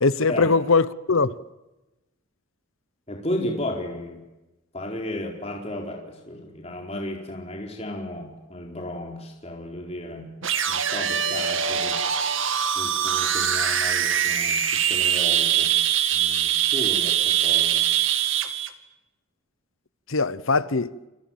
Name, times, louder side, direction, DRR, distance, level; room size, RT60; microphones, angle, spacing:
voice 1, 0.0-1.4 20.1-20.9, left 4 dB, 75° left, 1.0 m, -21 dB
voice 2, 3.1-4.2 4.7-10.3 10.7-12.0 12.7-15.7 16.1-17.9, left 1 dB, 30° left, 4.3 m, -34 dB
sound 1, 10.4-18.7, right 9 dB, 65° right, 2.2 m, -23 dB
29.0 x 24.5 x 7.5 m
head